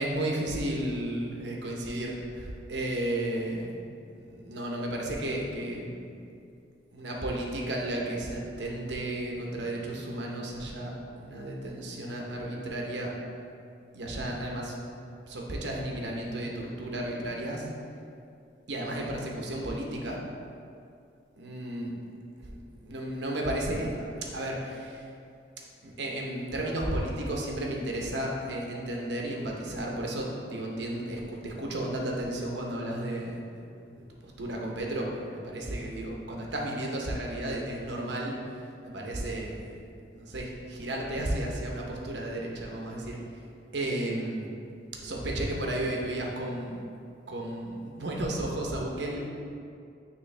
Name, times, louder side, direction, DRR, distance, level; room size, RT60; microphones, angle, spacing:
voice 1, 0.0-3.8 4.1-6.2 6.9-13.1 13.9-14.7 15.3-17.7 18.7-20.2 21.4-21.9 22.5-24.1 24.3-25.0 25.8-33.6 34.0-38.4 38.8-43.2 43.7-44.5 45.0-46.8 47.3-49.2, right 1 dB, 65° right, -1 dB, 0.9 m, -33 dB
9.2 x 3.1 x 3.3 m, 2.4 s
head